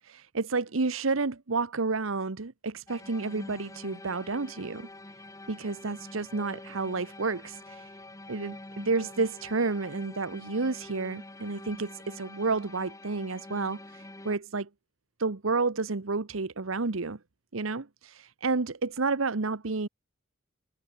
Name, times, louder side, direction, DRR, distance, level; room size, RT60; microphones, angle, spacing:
voice 1, 0.0-4.9 5.5-7.9 8.3-14.7 15.2-17.2 17.5-19.9, right 3 dB, 75° right, 1.1 m, -30 dB
sound 1, 2.9-14.4, left 2 dB, 15° left, 1.2 m, -46 dB
open air
head